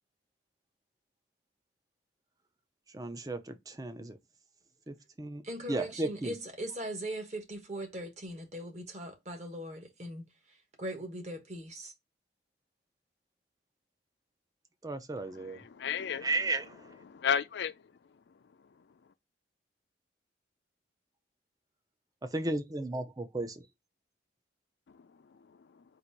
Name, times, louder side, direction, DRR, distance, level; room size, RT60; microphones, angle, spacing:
voice 1, 2.9-4.2 4.9-5.4 5.7-6.3 14.8-15.6 16.2-16.8 22.3-23.6, right 2 dB, 20° right, 0.5 m, -34 dB
voice 2, 5.4-10.3 10.8-11.9, right 1 dB, 40° right, 1.1 m, -40 dB
voice 3, 15.2-16.3 17.0-17.8 24.9-25.8, left 7 dB, 70° left, 0.4 m, -35 dB
4.0 x 2.5 x 4.5 m
head